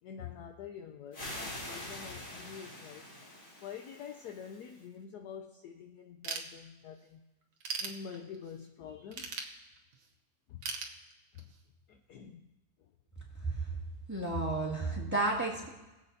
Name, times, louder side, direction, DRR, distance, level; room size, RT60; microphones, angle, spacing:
voice 1, 0.0-7.2 7.8-9.4 10.5-10.6 11.3-11.5 11.9-12.5 12.8-12.9, left 7 dB, 70° left, 5 dB, 1.0 m, -47 dB
sound 1, 1.1-4.8, left 1 dB, 45° left, 3.3 m, -45 dB
Ratchet pawl / Tools, 6.2-7.0 7.4-8.6 9.1-10.1 10.6-11.6, right 5 dB, 80° right, 1.7 m, -39 dB
voice 2, 14.1-15.7, right 2 dB, 10° right, -5 dB, 1.9 m, -32 dB
21.0 x 7.9 x 2.7 m, 1.0 s
omnidirectional pair, 2.1 m